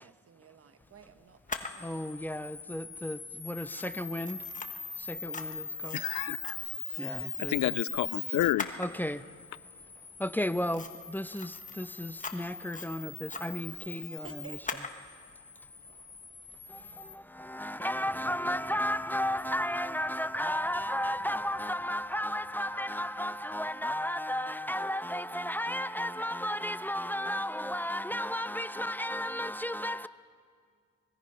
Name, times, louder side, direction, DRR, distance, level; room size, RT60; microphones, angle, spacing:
voice 1, 0.0-2.1 14.2-14.9, right 7 dB, 50° right, 1.3 m, -53 dB
Camera, 1.5-17.1, left 4 dB, 25° left, 1.4 m, -40 dB
voice 2, 1.8-4.4 5.0-6.0 7.0-7.8 8.8-9.3 10.2-14.6 16.7-30.1, equal, 5° left, 0.5 m, -34 dB
voice 3, 5.9-6.6 7.1-8.7, left 16 dB, 75° left, 0.5 m, -30 dB
23.5 x 20.5 x 5.5 m
cardioid pair, 90°, 30 cm